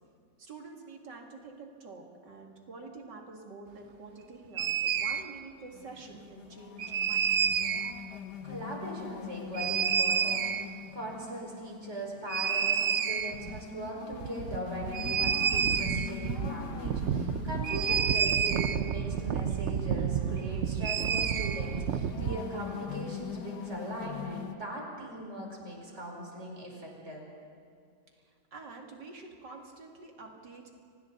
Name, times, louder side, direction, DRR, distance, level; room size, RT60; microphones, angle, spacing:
voice 1, 0.4-7.7 28.5-30.8, right 3 dB, 80° right, 1 dB, 3.0 m, -48 dB
sound 1, 4.6-5.2 6.8-7.9 9.5-10.7 12.3-13.6 13.9-14.0 14.1-22.4, right 7 dB, 60° right, 0.8 m, -29 dB
sound 2, 5.7-24.5, left 9 dB, 70° left, 1.6 m, -43 dB
voice 2, 8.4-27.3, right 1 dB, 40° right, -2 dB, 5.1 m, -40 dB
30.0 x 25.0 x 4.0 m, 2.3 s
omnidirectional pair, 1.9 m